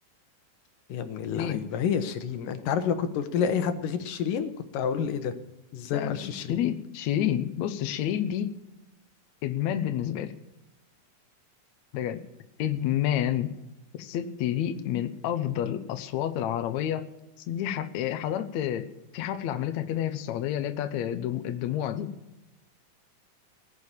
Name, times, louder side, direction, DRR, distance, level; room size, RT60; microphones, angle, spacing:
voice 1, 0.9-5.3 5.7-6.6, left 7 dB, 85° left, 10 dB, 2.7 m, -29 dB
voice 2, 5.9-8.5 9.4-10.3 11.9-12.2 12.6-13.5 13.9-17.1 17.5-22.1, left 11 dB, 70° left, 9 dB, 2.0 m, -29 dB
19.0 x 6.6 x 8.7 m, 0.98 s
omnidirectional pair, 3.7 m